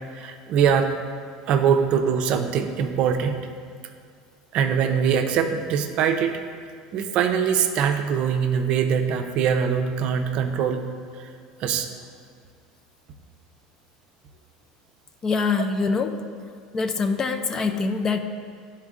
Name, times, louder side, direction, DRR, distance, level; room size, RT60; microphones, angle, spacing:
voice 1, 0.2-0.9 1.5-3.4 4.5-6.3 6.9-10.9 11.2-11.3 11.6-11.9, right 7 dB, 50° right, 6 dB, 0.5 m, -22 dB
voice 2, 15.2-16.2 16.7-18.2, left 4 dB, 25° left, 7 dB, 0.4 m, -24 dB
11.5 x 4.3 x 3.7 m, 2.1 s
cardioid pair, 145°, 2 cm